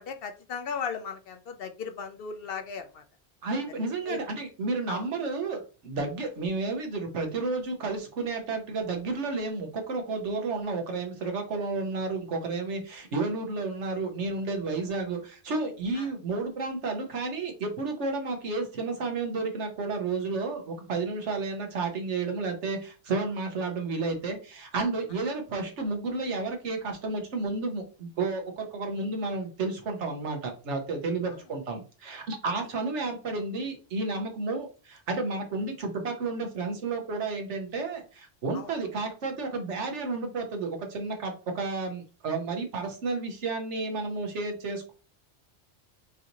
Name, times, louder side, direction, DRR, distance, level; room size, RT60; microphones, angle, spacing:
voice 1, 0.0-3.0 4.1-4.2 4.9-5.0 16.0-16.1 31.3-31.4 38.5-38.7, left 6 dB, 60° left, 7 dB, 0.7 m, -36 dB
voice 2, 3.4-44.9, right 3 dB, 80° right, 4 dB, 1.2 m, -31 dB
4.7 x 2.7 x 2.9 m, 0.35 s
omnidirectional pair, 1.2 m